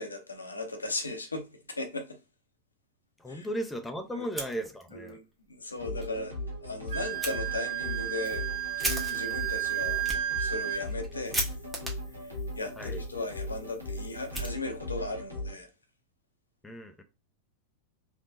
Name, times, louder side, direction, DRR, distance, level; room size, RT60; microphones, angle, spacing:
voice 1, 0.0-2.2 3.3-3.5 4.1-4.3 4.9-5.2 5.5-6.3 6.6-10.0 10.4-11.4 12.2-15.7, left 2 dB, 80° left, 0.7 m, -37 dB
voice 2, 3.2-5.2 12.8-13.0 16.6-17.0, right 1 dB, 5° left, 0.5 m, -36 dB
Fire, 4.2-5.1 5.5-5.6 6.0-6.1 7.2-7.3 7.9-15.1, right 2 dB, 10° right, 1.1 m, -39 dB
sound 1, 5.8-15.5, left 1 dB, 85° right, 1.4 m, -38 dB
Wind instrument woodwind instrument, 6.9-10.8, right 12 dB, 45° right, 1.0 m, -32 dB
3.4 x 2.9 x 2.6 m
figure-of-eight pair, 90°, 0 cm